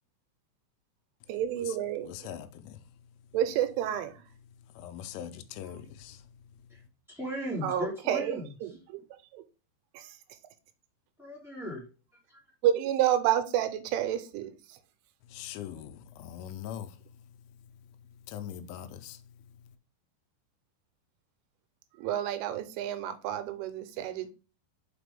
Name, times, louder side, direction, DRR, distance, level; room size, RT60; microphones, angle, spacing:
voice 1, 1.3-2.1 3.3-4.2 7.6-9.0 9.3-9.4 9.9-10.1 12.6-14.5 22.0-24.3, right 11 dB, 85° right, 3.2 m, -30 dB
voice 2, 2.0-3.1 4.5-6.9 15.2-19.8, left 10 dB, 80° left, 3.0 m, -43 dB
voice 3, 7.1-8.7 11.2-11.8 12.3-12.4, equal, 5° right, 0.4 m, -37 dB
6.0 x 5.1 x 3.4 m
omnidirectional pair, 5.6 m